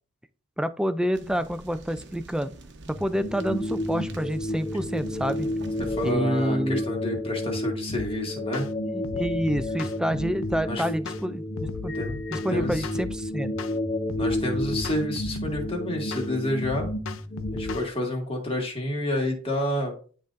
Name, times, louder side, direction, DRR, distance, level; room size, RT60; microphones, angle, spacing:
voice 1, 0.6-2.5 2.9-5.5 6.0-6.8 8.9-11.9 12.3-13.5, equal, 5° right, 12 dB, 0.3 m, -28 dB
sound 1, 1.1-6.1, right 2 dB, 60° right, 0.9 m, -44 dB
sound 2, 2.9-17.8, left 1 dB, 50° left, 1.1 m, -31 dB
voice 2, 5.8-8.7 10.7-10.9 11.9-12.2 12.5-12.9 14.1-16.9 17.5-19.9, left 1 dB, 30° left, 1 dB, 1.8 m, -29 dB
sound 3, 7.9-8.1 8.5-8.7 9.0-10.6 11.0-11.2 11.6-13.2 13.6-13.8 14.1-15.7 16.1-16.3 16.6-17.9, left 5 dB, 85° left, 0.5 m, -37 dB
10.5 x 3.9 x 2.5 m, 0.40 s
head